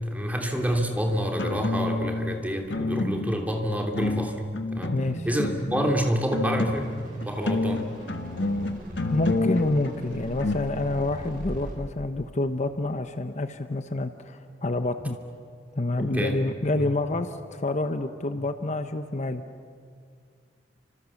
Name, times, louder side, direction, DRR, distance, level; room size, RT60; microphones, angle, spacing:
voice 1, 0.0-4.4 4.7-5.0 5.2-7.9 16.0-16.4 16.8-16.9, equal, 10° right, 2 dB, 3.0 m, -28 dB
sound 1, 1.3-2.3 2.7-3.5 3.9-7.0 7.2-10.6, left 2 dB, 70° left, 1.6 m, -29 dB
voice 2, 4.9-5.3 9.1-15.2 15.8-19.4, left 2 dB, 40° left, 8 dB, 0.9 m, -28 dB
sound 2, 6.6-11.7, equal, 50° right, 6.9 m, -40 dB
30.0 x 26.0 x 7.2 m, 2.1 s
head